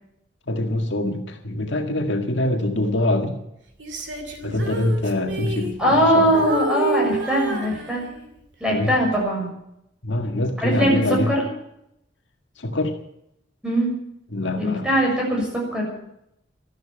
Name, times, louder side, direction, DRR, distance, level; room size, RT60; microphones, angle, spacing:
voice 1, 0.5-3.4 4.4-6.4 8.7-8.9 10.0-11.3 12.6-13.0 14.3-14.9, left 1 dB, 70° left, 4 dB, 1.9 m, -24 dB
Female singing, 3.8-6.1 6.3-8.4 8.9-9.2, right 3 dB, 70° right, 2.7 m, -29 dB
voice 2, 5.8-8.0 8.6-9.5 10.6-11.0 11.3-11.4 13.6-13.9 14.6-15.9, equal, 5° right, -2 dB, 6.6 m, -21 dB
13.5 x 12.0 x 8.9 m, 0.80 s
head